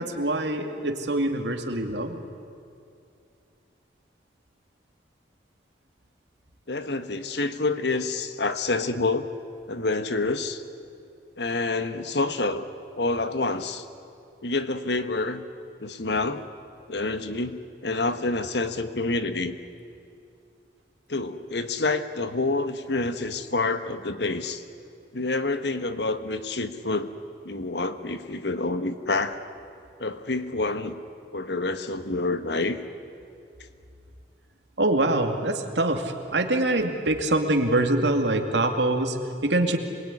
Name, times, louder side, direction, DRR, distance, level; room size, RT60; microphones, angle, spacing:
voice 1, 0.0-2.2 34.8-39.8, right 2 dB, 80° right, 4 dB, 2.4 m, -24 dB
voice 2, 6.7-9.3 9.7-10.6 11.4-12.7 13.0-13.8 14.4-15.4 15.8-16.4 16.9-19.6 21.1-24.6 25.1-27.1 27.4-29.4 30.0-31.0 31.3-32.8, left 3 dB, 70° left, 10 dB, 1.4 m, -27 dB
27.5 x 21.5 x 10.0 m, 2.5 s
head